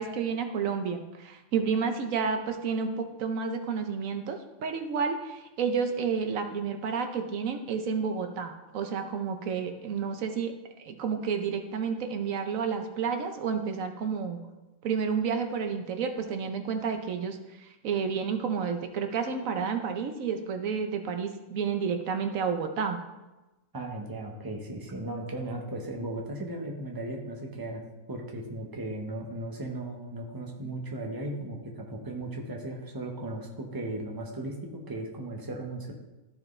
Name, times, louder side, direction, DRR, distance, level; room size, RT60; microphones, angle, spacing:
voice 1, 0.0-10.5 10.8-14.4 14.8-17.4 17.8-23.0, right 6 dB, 80° right, 6 dB, 1.2 m, -30 dB
voice 2, 23.7-35.9, right 1 dB, 20° right, 0 dB, 1.0 m, -36 dB
14.0 x 4.9 x 3.2 m, 1.1 s
omnidirectional pair, 1.4 m